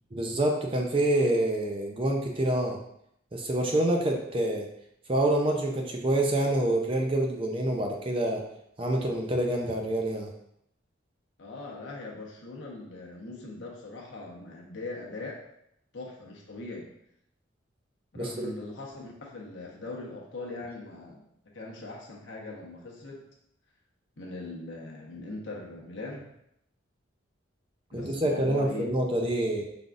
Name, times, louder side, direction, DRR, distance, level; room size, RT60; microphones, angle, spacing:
voice 1, 0.1-2.8 3.3-4.7 5.1-8.4 8.8-10.3 18.1-18.5 27.9-29.7, right 1 dB, 25° right, 1 dB, 0.6 m, -27 dB
voice 2, 11.4-15.4 15.9-16.9 18.1-23.2 24.2-26.3 27.9-28.9, left 2 dB, 65° left, -2 dB, 1.0 m, -40 dB
5.1 x 3.9 x 2.4 m, 0.76 s
head